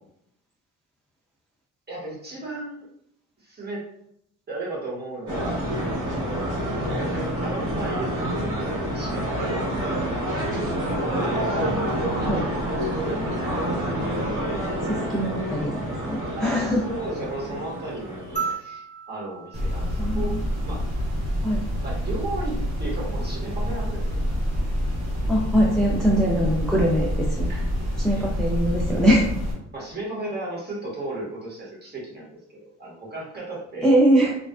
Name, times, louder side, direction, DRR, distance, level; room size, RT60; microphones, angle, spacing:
voice 1, 1.9-2.9 3.4-3.8 4.5-5.7 6.0-6.8 7.4-10.4 13.0-13.2 14.8-15.1 16.3-20.3 20.6-20.8 21.8-24.4 27.5-27.7 28.1-28.3 29.7-33.9, right 2 dB, 35° right, -4 dB, 1.1 m, -35 dB
sound 1, 5.3-18.5, equal, 80° right, 1.1 m, -27 dB
voice 2, 13.2-13.6 14.8-16.8 20.0-20.4 21.4-21.6 25.3-27.1 27.4-27.5 28.0-29.3 33.8-34.4, equal, ahead, -4 dB, 0.4 m, -22 dB
sound 2, 18.4-20.9 22.5-22.6, right 6 dB, 25° left, 0.8 m, -35 dB
sound 3, 19.5-29.5, equal, 60° right, 1.3 m, -27 dB
2.4 x 2.2 x 2.3 m, 0.71 s
cardioid pair, 90°, 30 cm